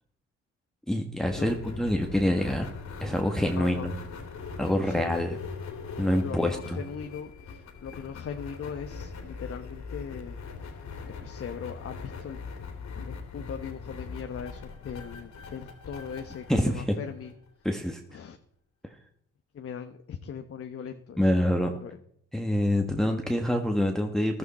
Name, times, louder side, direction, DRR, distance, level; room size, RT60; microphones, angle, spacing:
voice 1, 0.9-2.7 3.0-3.9 4.6-5.3 6.0-6.8 16.5-16.8 17.6-18.0 21.2-21.7 22.3-24.4, left 1 dB, ahead, 3 dB, 1.5 m, -26 dB
sound 1, 1.2-17.7, left 5 dB, 65° left, 3.3 m, -41 dB
voice 2, 3.6-3.9 4.8-5.2 6.2-10.4 11.0-12.4 13.0-17.3 18.1-18.4 19.5-22.0, left 7 dB, 50° left, 6 dB, 1.2 m, -39 dB
15.0 x 12.5 x 4.3 m, 0.68 s
cardioid pair, 90°, 30 cm